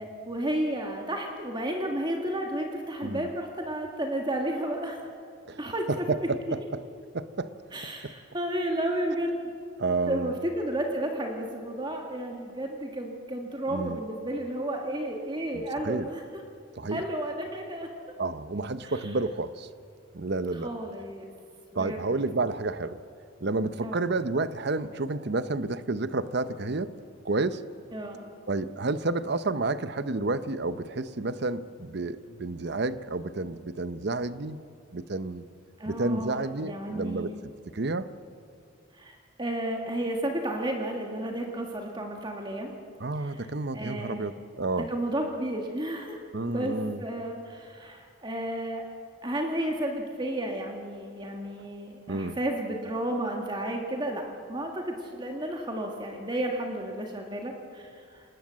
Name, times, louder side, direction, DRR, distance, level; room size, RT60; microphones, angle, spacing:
voice 1, 0.0-5.0 5.6-5.9 7.7-9.5 10.1-16.2 16.9-17.9 18.8-18.9 20.6-21.3 21.7-22.0 23.8-24.0 27.9-28.2 35.8-37.3 39.0-42.8 43.2-43.4 43.7-44.3 44.9-46.2 46.5-48.8 49.2-54.2 54.5-58.2, right 1 dB, 20° right, 2 dB, 1.7 m, -32 dB
voice 2, 5.9-6.8 7.1-7.5 8.0-8.1 9.8-10.4 13.7-14.0 15.5-16.1 16.8-17.0 18.2-19.7 20.1-20.7 21.7-23.0 23.4-26.9 27.2-27.6 28.5-34.6 34.9-35.4 35.8-37.3 37.7-38.1 43.0-44.9 46.3-47.0 52.1-52.4, right 3 dB, 55° right, 14 dB, 0.8 m, -30 dB
26.5 x 19.5 x 7.5 m, 2.3 s
head